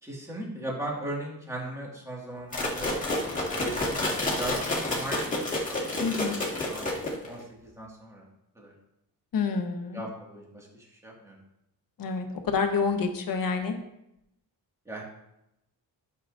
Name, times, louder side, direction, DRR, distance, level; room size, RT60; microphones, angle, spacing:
voice 1, 0.0-3.0 3.5-6.9 7.3-8.2 8.6-8.7 9.9-11.4 14.9-15.0, right 1 dB, 5° right, -3 dB, 2.0 m, -38 dB
sound 1, 2.5-7.4, left 1 dB, 20° left, 1.8 m, -29 dB
voice 2, 6.0-6.4 9.3-10.0 12.0-13.7, left 5 dB, 55° left, 5 dB, 1.2 m, -28 dB
12.0 x 6.8 x 2.6 m, 0.84 s
wide cardioid pair, 150°, 39 cm